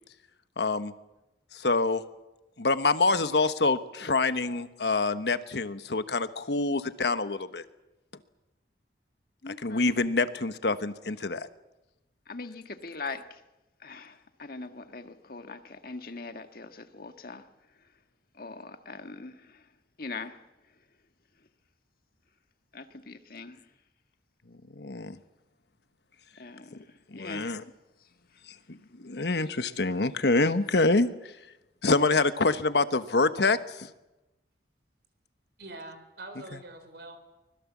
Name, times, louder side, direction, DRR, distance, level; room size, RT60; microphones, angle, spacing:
voice 1, 0.6-0.9 1.5-2.0 2.6-7.6 9.6-11.5 24.7-25.2 27.1-27.6 28.5-31.3 31.8-33.9, left 3 dB, 70° left, 11 dB, 1.2 m, -26 dB
voice 2, 9.4-9.9 12.3-13.4 13.8-17.5 18.3-19.7 20.0-20.4 22.7-23.6 26.4-27.5, left 3 dB, 55° left, 8 dB, 1.6 m, -41 dB
voice 3, 35.6-37.2, right 2 dB, 65° right, 8 dB, 4.5 m, -44 dB
24.5 x 21.0 x 7.4 m, 0.98 s
head